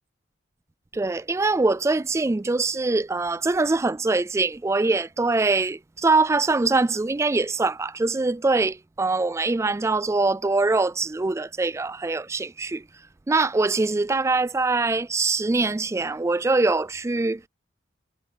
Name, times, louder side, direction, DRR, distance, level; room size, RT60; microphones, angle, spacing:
voice 1, 0.9-12.8 13.3-17.5, right 3 dB, 15° right, 0.3 m, -23 dB
head